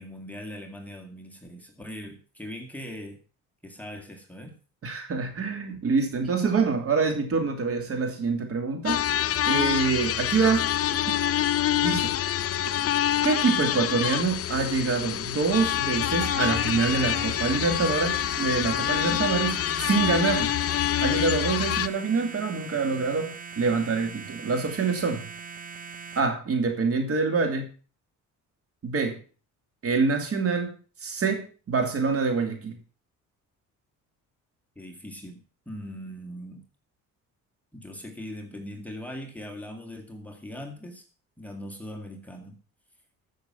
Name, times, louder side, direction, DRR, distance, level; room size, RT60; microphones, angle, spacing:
voice 1, 0.0-3.2 3.6-4.6 34.8-36.6 37.7-41.0 41.4-42.6, equal, 5° left, 2 dB, 2.2 m, -40 dB
voice 2, 4.8-9.2 9.5-11.0 11.8-12.1 13.2-20.5 21.0-25.2 26.2-27.7 28.8-29.2 29.8-32.8, right 4 dB, 45° right, 5 dB, 2.9 m, -26 dB
sound 1, 8.9-21.9, left 11 dB, 50° left, 0.6 m, -26 dB
sound 2, 16.2-26.2, right 5 dB, 25° right, 1.0 m, -40 dB
14.0 x 6.5 x 5.7 m, 0.38 s
cardioid pair, 115°, 31 cm